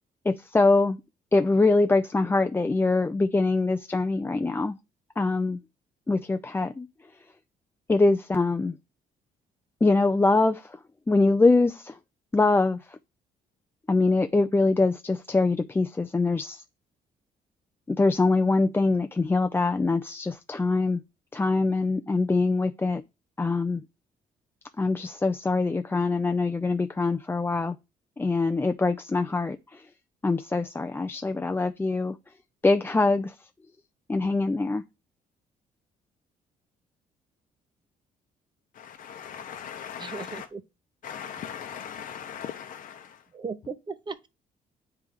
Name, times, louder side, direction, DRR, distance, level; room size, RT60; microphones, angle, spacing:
voice 1, 0.3-1.0 1.3-4.8 5.2-5.6 6.1-6.9 7.9-8.7 9.8-10.6 11.1-11.9 12.3-12.8 13.9-16.6 17.9-21.0 21.3-23.0 23.4-23.8 24.8-27.8 28.2-29.8 30.2-32.2 32.6-33.3 34.1-34.8, left 3 dB, 15° left, 0.4 m, -23 dB
voice 2, 38.7-40.5 41.0-43.2, left 8 dB, 55° left, 0.8 m, -39 dB
voice 3, 40.0-40.6 43.3-44.3, right 5 dB, 30° right, 0.7 m, -37 dB
8.9 x 3.4 x 3.5 m
cardioid pair, 85°, 16 cm